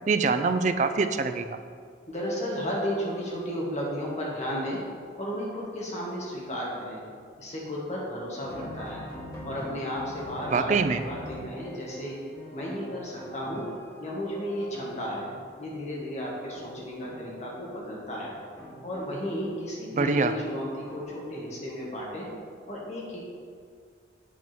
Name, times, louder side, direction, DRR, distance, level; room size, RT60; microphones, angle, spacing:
voice 1, 0.1-1.6 10.5-11.0 20.0-20.3, right 4 dB, 40° right, 9 dB, 0.4 m, -24 dB
voice 2, 2.1-4.8 5.2-7.0 7.4-9.1 9.4-10.8 11.0-12.2 12.5-13.7 14.0-15.3 15.6-18.4 18.8-22.3 22.7-23.3, equal, 35° left, -4 dB, 1.7 m, -33 dB
sound 1, 8.4-21.9, equal, 20° left, 1.7 m, -44 dB
8.4 x 3.6 x 5.9 m, 2.1 s
head